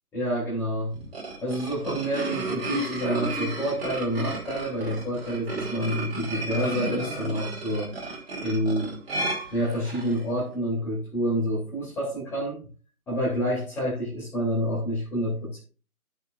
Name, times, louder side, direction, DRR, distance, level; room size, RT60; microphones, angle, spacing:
voice 1, 0.1-0.9 1.4-7.9 8.4-8.9 9.5-12.6 13.1-15.6, equal, 5° left, -7 dB, 2.8 m, -28 dB
sound 1, 0.9-10.2, right 2 dB, 40° right, 3.0 m, -33 dB
14.0 x 6.4 x 2.5 m, 0.38 s
figure-of-eight pair, 150°, 45 cm